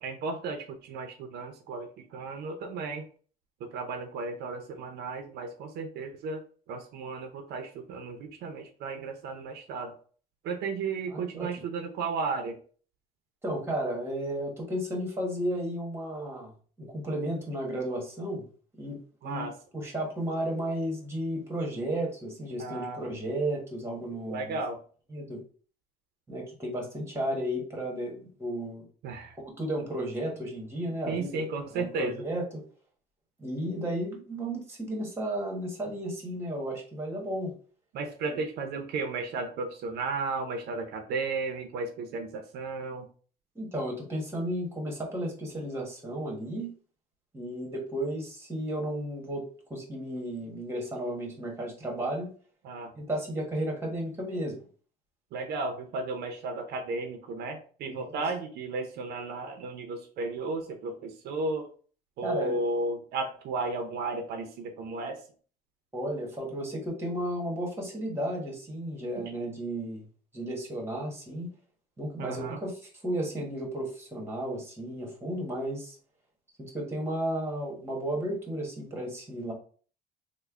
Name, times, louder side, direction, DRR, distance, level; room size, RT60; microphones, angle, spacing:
voice 1, 0.0-3.0 3.6-6.4 6.7-10.0 10.4-12.6 19.2-19.5 22.6-23.0 24.3-24.8 29.0-29.4 31.1-32.2 37.9-43.1 52.6-52.9 55.3-61.7 62.2-65.2 69.2-69.3 72.2-72.6, right 3 dB, 75° right, 5 dB, 0.6 m, -34 dB
voice 2, 11.1-11.5 13.4-16.5 16.8-18.5 18.8-19.5 19.7-24.6 25.1-25.4 26.3-28.8 29.4-31.4 31.7-32.6 33.4-37.5 38.2-38.3 43.5-46.7 47.3-52.3 52.9-54.7 57.9-58.2 62.2-62.6 65.9-70.0 70.3-71.5 72.0-72.7 73.0-76.0 76.6-79.5, right 1 dB, 15° right, 0 dB, 1.3 m, -33 dB
3.2 x 2.1 x 3.5 m, 0.42 s
cardioid pair, 110°, 17 cm